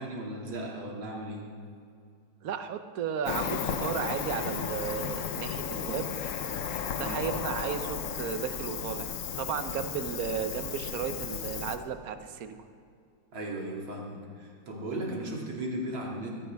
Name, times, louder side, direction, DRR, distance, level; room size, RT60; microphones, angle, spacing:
voice 1, 0.0-1.5 7.0-7.2 13.3-16.3, right 1 dB, 75° right, -3 dB, 3.2 m, -36 dB
voice 2, 2.4-6.1 6.9-12.5, right 8 dB, 60° right, 8 dB, 1.1 m, -34 dB
Cricket, 3.2-11.8, left 7 dB, 65° left, 0.8 m, -34 dB
21.0 x 16.0 x 3.5 m, 2.3 s
omnidirectional pair, 2.2 m